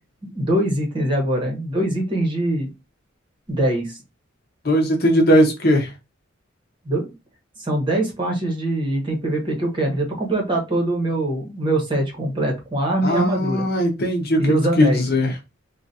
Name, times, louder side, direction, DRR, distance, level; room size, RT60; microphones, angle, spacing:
voice 1, 0.2-2.7 3.5-4.0 6.8-7.1 7.6-13.6 14.4-15.0, right 1 dB, 25° right, 0 dB, 1.2 m, -23 dB
voice 2, 4.6-5.9 13.0-14.4 14.8-15.3, equal, 50° left, 2 dB, 0.9 m, -18 dB
3.9 x 2.4 x 2.7 m, 0.24 s
head